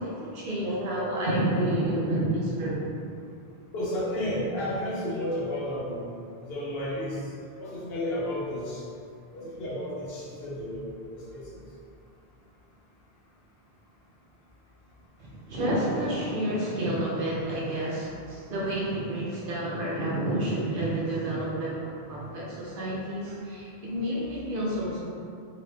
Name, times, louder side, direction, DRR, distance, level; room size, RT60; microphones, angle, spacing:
voice 1, 0.0-2.9 15.2-25.1, right 1 dB, 65° right, -6 dB, 0.7 m, -29 dB
voice 2, 3.7-6.1 6.4-7.2 7.6-8.8 9.3-10.8 11.1-11.5, left 1 dB, 75° left, -6 dB, 1.0 m, -32 dB
2.9 x 2.4 x 3.2 m, 2.4 s
omnidirectional pair, 1.0 m